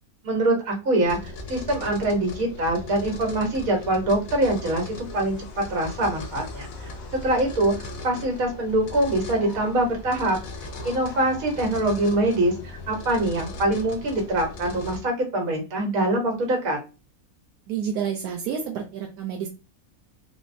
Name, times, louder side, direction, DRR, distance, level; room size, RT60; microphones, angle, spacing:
voice 1, 0.2-6.7 7.2-10.4 10.8-16.8, right 1 dB, 70° right, 1 dB, 1.5 m, -24 dB
sound 1, 1.0-15.0, left 2 dB, 70° left, 1.0 m, -38 dB
voice 2, 17.7-19.5, right 7 dB, 85° right, 2 dB, 1.1 m, -29 dB
4.1 x 2.0 x 2.6 m, 0.32 s
omnidirectional pair, 1.6 m